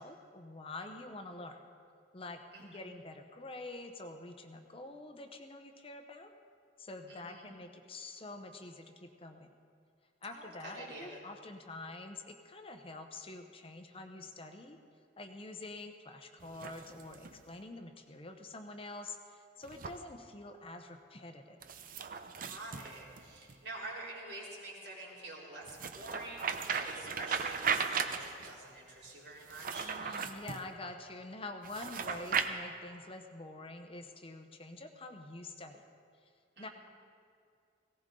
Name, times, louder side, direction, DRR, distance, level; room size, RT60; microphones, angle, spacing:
voice 1, 0.0-1.6 2.1-6.3 6.8-9.5 10.2-14.8 15.2-21.6 29.8-35.8 36.6-36.7, left 2 dB, 30° left, 5 dB, 0.9 m, -47 dB
voice 2, 7.1-7.5 10.3-11.2 22.4-29.9 36.6-36.7, right 2 dB, 75° right, -5 dB, 3.7 m, -47 dB
sound 1, 16.4-17.4 19.6-20.0 21.6-23.6 25.7-28.6 29.4-30.6 31.6-32.5, right 6 dB, 50° right, 0.7 m, -37 dB
18.0 x 17.0 x 3.8 m, 2.3 s
head